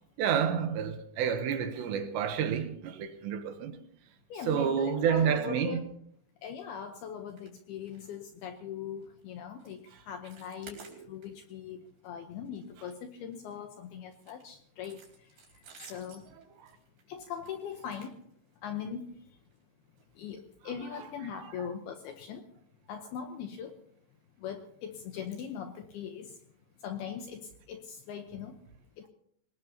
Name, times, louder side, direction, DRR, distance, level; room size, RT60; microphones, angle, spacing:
voice 1, 0.2-3.8 4.5-5.8 10.8-11.1 16.6-16.7 20.9-21.0 21.6-21.7, right 8 dB, 75° right, 2.9 m, -29 dB
voice 2, 4.3-5.8 6.4-10.8 11.1-15.3 15.8-16.2 17.1-18.2 18.6-19.1 20.2-22.5 22.9-23.7 24.4-26.3 26.8-28.6 29.0-29.1, left 8 dB, 80° left, 2.3 m, -40 dB
sound 1, 7.3-7.5 7.8-8.1 8.4-8.6 9.0-9.2 9.6-9.8 10.1-11.5 11.9-12.1 12.5-13.6 14.1-18.7 19.5-19.6 20.0-20.1 20.5-20.6, right 5 dB, 50° right, 5.3 m, -55 dB
24.5 x 19.5 x 2.9 m
omnidirectional pair, 5.7 m